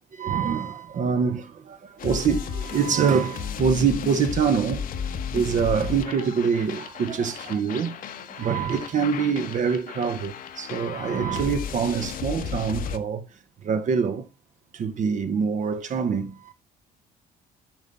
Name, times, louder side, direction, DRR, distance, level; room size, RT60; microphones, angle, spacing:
voice 1, 0.1-4.8 5.3-8.0 8.3-13.2 13.6-14.2 14.7-16.5, right 6 dB, 45° right, 1.0 m, -25 dB
sound 1, 2.0-13.0, left 7 dB, 55° left, 1.1 m, -34 dB
8.9 x 5.6 x 4.0 m
cardioid pair, 110°, 17 cm